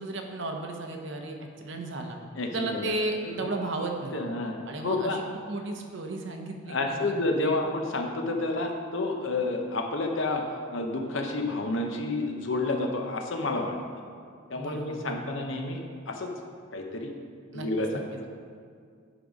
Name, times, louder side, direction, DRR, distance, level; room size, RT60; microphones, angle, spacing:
voice 1, 0.0-2.2 2.5-4.2 4.7-7.1 7.4-7.6 14.5-15.3 17.5-17.7 17.9-18.3, right 2 dB, 60° right, 3 dB, 0.8 m, -34 dB
voice 2, 2.4-2.9 4.1-5.2 6.7-10.4 10.7-13.8 14.5-15.8 16.1-16.3 16.7-17.1 17.5-18.3, left 2 dB, 65° left, 3 dB, 0.8 m, -30 dB
10.0 x 4.1 x 4.9 m, 2.2 s
head